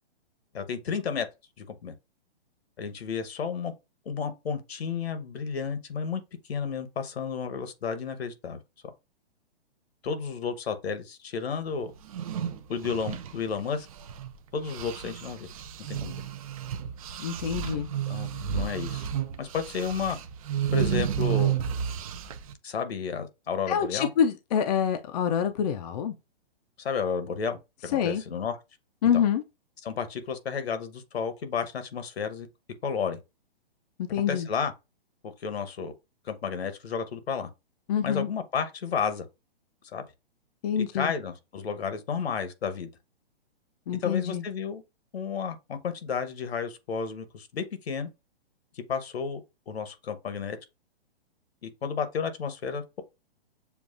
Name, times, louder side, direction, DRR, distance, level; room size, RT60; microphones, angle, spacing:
voice 1, 0.5-1.3 1.8-1.9 2.8-3.7 4.1-6.2 6.5-8.6 10.0-11.9 12.7-13.9 14.5-15.5 15.9-16.2 18.1-19.1 19.4-20.2 20.7-21.6 22.6-24.1 26.8-28.6 29.1-29.2 29.8-32.5 32.8-33.2 34.3-34.7 35.2-35.9 36.2-37.5 38.0-39.3 39.9-40.0 40.8-42.9 44.0-44.8 45.1-48.1 48.9-49.4 49.7-50.6 51.6-53.0, left 6 dB, 80° left, 1.1 m, -32 dB
sound 1, 12.0-14.3 14.6-22.5, right 9 dB, 35° right, 0.4 m, -31 dB
voice 2, 17.2-17.9 23.7-26.1 27.9-28.2 29.0-29.4 34.1-34.5 37.9-38.3 40.6-41.1 43.9-44.4, left 8 dB, 40° left, 0.5 m, -26 dB
7.0 x 2.4 x 2.5 m
hypercardioid pair, 145°, 31 cm